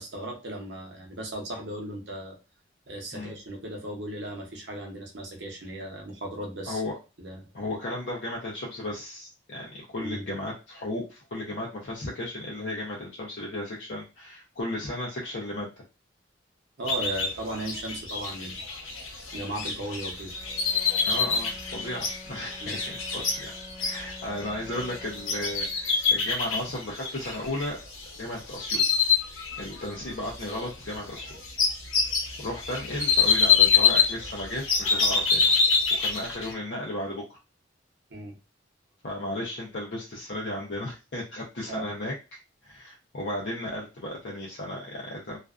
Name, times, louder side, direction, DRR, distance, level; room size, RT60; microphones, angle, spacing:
voice 1, 0.0-2.4 2.9-6.8 7.2-7.4 10.0-10.2 16.8-18.6 19.3-20.3 22.6-22.8 38.1-38.3 41.7-41.9, right 1 dB, 60° right, 1 dB, 0.7 m, -36 dB
voice 2, 6.7-7.0 7.5-15.7 21.1-23.5 23.8-27.8 28.2-28.8 29.6-31.4 32.4-35.5 35.9-37.4 39.0-42.1 42.6-45.4, left 1 dB, 55° left, -4 dB, 0.6 m, -34 dB
sound 1, 16.9-28.2 28.5-29.9 30.2-36.5, left 5 dB, 85° left, 0.9 m, -26 dB
Bowed string instrument, 20.3-26.1, left 1 dB, 15° right, 0.5 m, -47 dB
2.4 x 2.2 x 2.3 m, 0.30 s
head